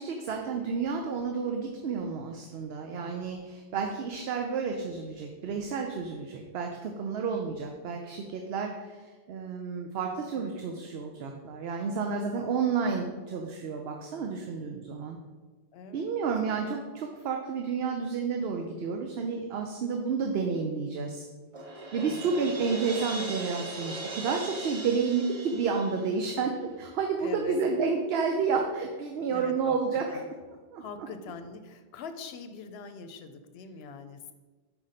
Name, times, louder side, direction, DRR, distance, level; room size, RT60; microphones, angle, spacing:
voice 1, 0.0-15.2 15.9-21.2 21.9-30.1 30.7-30.8, right 5 dB, 70° right, 3 dB, 0.8 m, -30 dB
voice 2, 2.8-3.2 15.7-16.1 16.6-16.8 22.0-22.5 27.2-27.6 29.3-29.8 30.1-30.3 30.8-34.3, left 4 dB, 75° left, 8 dB, 0.8 m, -43 dB
Crash cymbal, 21.5-26.5, right 2 dB, 35° right, 0.7 m, -39 dB
5.0 x 4.6 x 5.7 m, 1.3 s
omnidirectional pair, 1.1 m